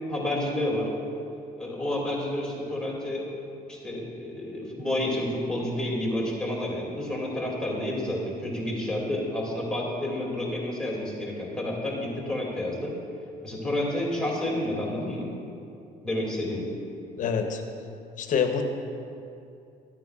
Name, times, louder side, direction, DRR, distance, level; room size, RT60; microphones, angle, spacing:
voice 1, 0.1-0.9 1.6-3.3 3.7-12.9 13.4-15.3 16.0-16.6, left 1 dB, 5° left, -4 dB, 2.3 m, -30 dB
voice 2, 17.2-17.6 18.2-18.6, left 7 dB, 50° left, 5 dB, 0.8 m, -26 dB
13.0 x 9.1 x 2.4 m, 2.6 s
cardioid pair, 110°, 17 cm